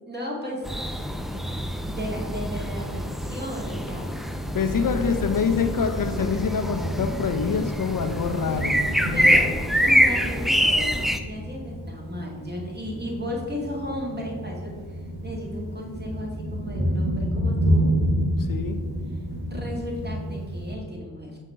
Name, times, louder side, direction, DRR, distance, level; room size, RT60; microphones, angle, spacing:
voice 1, 0.1-0.7 1.9-4.1 9.1-9.5 9.8-17.9 19.5-21.4, equal, 25° right, -2 dB, 1.8 m, -34 dB
sound 1, 0.6-11.2, equal, ahead, 0.5 m, -25 dB
Thunder, 1.4-20.7, equal, 80° right, 1.5 m, -31 dB
voice 2, 4.5-8.8 9.3-9.4 18.4-18.8, left 6 dB, 60° left, 7 dB, 0.6 m, -26 dB
5.3 x 3.6 x 5.6 m, 1.5 s
cardioid pair, 45°, 38 cm